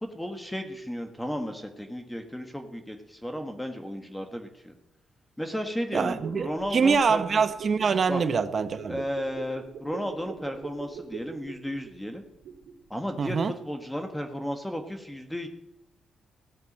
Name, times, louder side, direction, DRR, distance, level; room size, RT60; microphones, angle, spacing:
voice 1, 0.0-4.8 5.4-7.2 8.1-8.2 8.9-12.2 12.9-15.5, equal, 5° left, 5 dB, 1.5 m, -34 dB
voice 2, 5.9-9.0 13.2-13.5, right 5 dB, 50° right, 10 dB, 0.9 m, -25 dB
sound 1, 6.1-12.9 13.2-13.3, right 6 dB, 90° right, 2.0 m, -42 dB
16.0 x 6.0 x 8.6 m, 0.88 s
cardioid pair, 90°, 0 cm